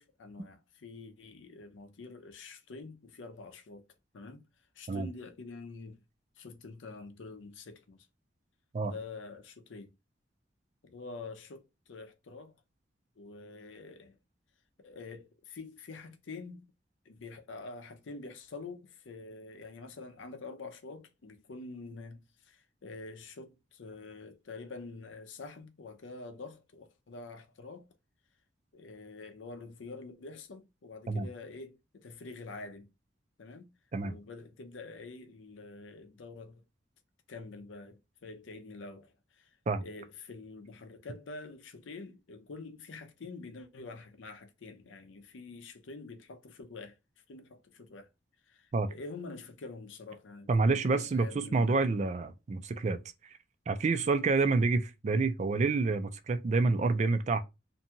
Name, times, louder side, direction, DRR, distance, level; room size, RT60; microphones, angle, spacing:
voice 1, 0.0-3.8 4.1-4.4 4.7-6.0 6.4-8.1 8.8-9.9 10.8-12.5 13.2-14.2 14.8-16.7 17.1-27.9 28.7-32.9 33.4-33.7 34.0-36.6 37.3-39.5 39.8-47.0 47.3-48.1 48.5-51.8, left 3 dB, 85° left, 0.6 m, -46 dB
voice 2, 50.5-53.0 53.3-53.4 53.7-57.4, right 3 dB, 40° right, 0.3 m, -28 dB
2.6 x 2.3 x 2.7 m
head